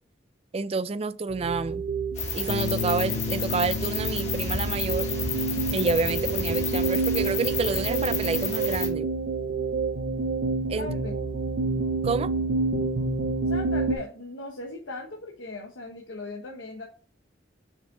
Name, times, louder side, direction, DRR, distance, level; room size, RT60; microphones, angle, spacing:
voice 1, 0.5-1.8 2.3-5.1 5.7-9.1 10.7-10.9 12.0-12.3, right 4 dB, 30° right, 0.3 m, -29 dB
sound 1, 1.3-14.0, right 3 dB, 70° right, 0.8 m, -28 dB
sound 2, 2.2-8.9, left 5 dB, 35° left, 1.7 m, -32 dB
Bass guitar, 2.5-8.7, left 5 dB, 60° left, 0.3 m, -35 dB
voice 2, 10.8-11.2 13.5-16.8, left 2 dB, 80° left, 1.1 m, -38 dB
5.9 x 4.5 x 3.8 m
head